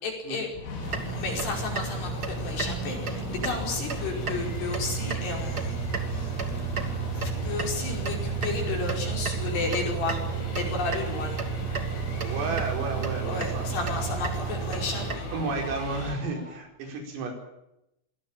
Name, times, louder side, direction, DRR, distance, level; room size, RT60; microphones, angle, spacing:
voice 1, 0.0-0.5 1.1-5.8 6.1-6.4 7.1-11.4 13.3-15.3, left 4 dB, 55° left, 2 dB, 7.0 m, -33 dB
sound 1, 0.5-16.1, left 3 dB, 85° left, 6.8 m, -37 dB
sound 2, 0.8-15.2, right 7 dB, 65° right, 0.9 m, -32 dB
sound 3, 10.2-16.6, left 1 dB, 15° left, 1.9 m, -47 dB
voice 2, 12.2-13.6 15.3-17.3, right 3 dB, 85° right, 3 dB, 7.5 m, -32 dB
24.0 x 18.0 x 9.0 m, 0.85 s
omnidirectional pair, 5.8 m